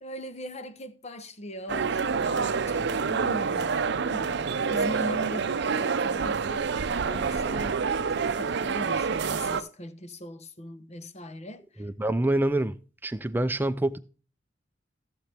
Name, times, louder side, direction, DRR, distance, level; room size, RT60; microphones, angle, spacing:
voice 1, 0.0-4.4 4.7-6.7 7.1-11.8, equal, 35° left, 0.9 m, -40 dB
sound 1, 1.7-9.6, right 5 dB, 65° right, 0.5 m, -27 dB
voice 2, 11.8-14.0, right 1 dB, 10° right, 0.4 m, -26 dB
15.0 x 7.0 x 3.4 m
head